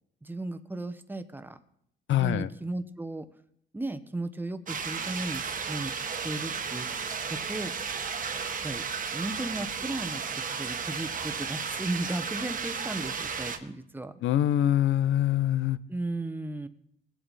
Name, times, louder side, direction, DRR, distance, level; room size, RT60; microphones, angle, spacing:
voice 1, 0.2-1.6 2.1-3.3 3.7-6.9 7.2-7.7 8.6-8.8 9.1-10.2 10.6-14.2 15.9-16.7, right 2 dB, 10° right, 10 dB, 0.9 m, -35 dB
voice 2, 2.1-2.5 14.2-15.8, left 12 dB, 75° left, 16 dB, 0.6 m, -24 dB
sound 1, 4.7-13.6, right 6 dB, 40° right, 1.2 m, -34 dB
19.5 x 7.8 x 4.1 m, 0.70 s
cardioid pair, 90°, 20 cm